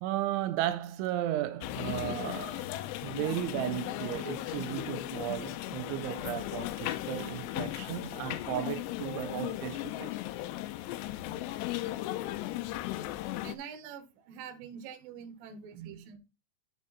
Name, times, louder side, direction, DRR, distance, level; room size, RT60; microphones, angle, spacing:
voice 1, 0.0-2.7 3.0-10.2 15.8-16.0, right 13 dB, 85° right, 3.0 m, -35 dB
sound 1, 1.6-13.6, left 15 dB, 85° left, 2.5 m, -36 dB
voice 2, 13.4-16.2, right 7 dB, 70° right, 2.4 m, -45 dB
8.8 x 6.6 x 4.0 m
omnidirectional pair, 5.4 m